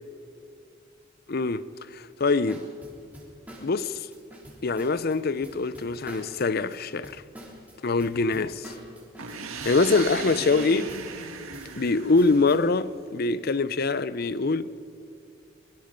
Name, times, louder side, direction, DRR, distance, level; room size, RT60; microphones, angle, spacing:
voice 1, 1.3-2.6 3.6-4.1 4.6-7.2 7.8-8.7 9.6-10.9 11.8-14.7, left 3 dB, 45° left, 0.6 m, -24 dB
sound 1, 2.5-12.6, equal, 5° right, 3.6 m, -46 dB
sound 2, 9.2-12.9, right 5 dB, 85° right, 1.8 m, -38 dB
23.5 x 22.0 x 5.2 m
head